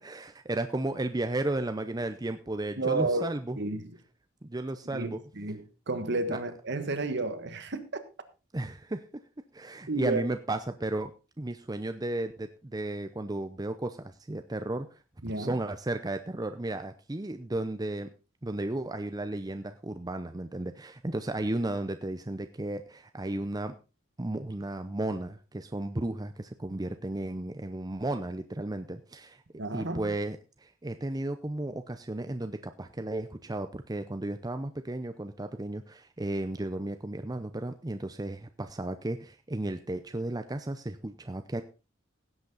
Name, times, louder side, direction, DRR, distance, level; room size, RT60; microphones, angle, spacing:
voice 1, 0.0-3.6 4.4-5.2 6.3-6.4 8.5-9.2 9.5-11.1 11.4-14.9 15.4-18.1 18.4-23.7 24.2-29.4 29.7-41.6, right 2 dB, 20° right, 0.6 m, -34 dB
voice 2, 2.8-3.3 3.6-4.0 4.9-8.0 9.9-10.2 15.2-15.5 29.6-30.1, right 3 dB, 55° right, 1.5 m, -31 dB
16.5 x 8.2 x 4.0 m
head